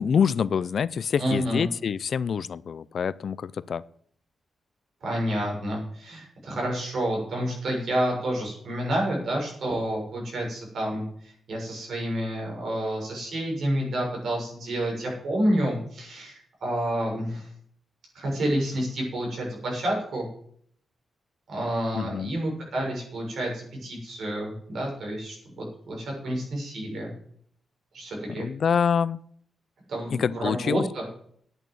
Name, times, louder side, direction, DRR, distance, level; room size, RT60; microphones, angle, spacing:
voice 1, 0.0-3.8 21.9-22.3 28.3-29.2 30.1-30.8, left 7 dB, 50° left, 18 dB, 0.4 m, -26 dB
voice 2, 1.2-1.6 5.0-17.5 18.1-20.3 21.5-27.1 27.9-28.5 29.9-31.1, right 1 dB, 60° right, -1 dB, 6.9 m, -29 dB
11.0 x 9.1 x 7.8 m, 0.63 s
wide cardioid pair, 165°, 0 cm